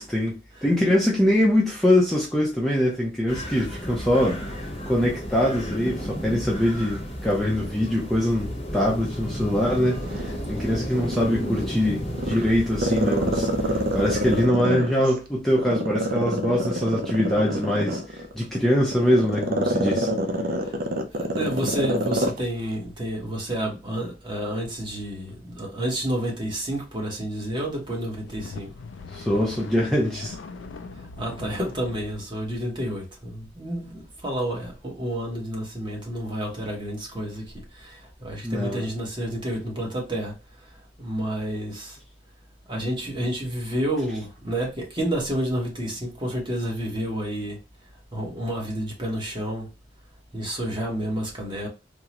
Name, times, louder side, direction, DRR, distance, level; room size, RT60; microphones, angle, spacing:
voice 1, 0.0-20.1 29.1-30.4 38.4-38.9, left 1 dB, ahead, 0.5 m, -23 dB
sound 1, 3.3-14.5, equal, 30° left, 0.8 m, -33 dB
Growling, 10.0-11.7 12.1-15.1 15.6-22.4 22.7-22.8, right 1 dB, 50° right, 0.5 m, -26 dB
voice 2, 21.2-28.7 30.9-40.3 41.0-42.0 42.7-47.6 48.1-49.7 50.3-51.7, right 1 dB, 25° right, 0.9 m, -30 dB
sound 2, 28.0-32.2, left 4 dB, 85° left, 0.4 m, -40 dB
3.6 x 2.0 x 2.9 m
head